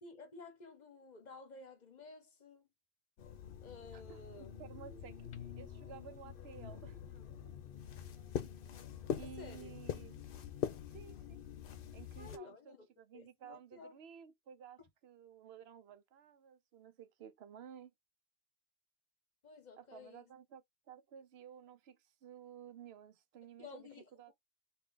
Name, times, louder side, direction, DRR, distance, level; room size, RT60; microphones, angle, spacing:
voice 1, 0.0-2.7 3.6-4.5 7.2-7.3 9.2-9.7 12.2-12.9 13.1-14.0 19.4-20.3 23.6-24.3, left 3 dB, 45° left, 1.1 m, -53 dB
sound 1, 3.2-12.4, left 8 dB, 65° left, 0.8 m, -44 dB
voice 2, 3.9-5.3 5.6-7.0 9.2-10.2 10.9-11.4 11.9-17.9 19.8-24.3, right 8 dB, 85° right, 0.9 m, -54 dB
3.2 x 2.6 x 3.7 m
omnidirectional pair, 1.1 m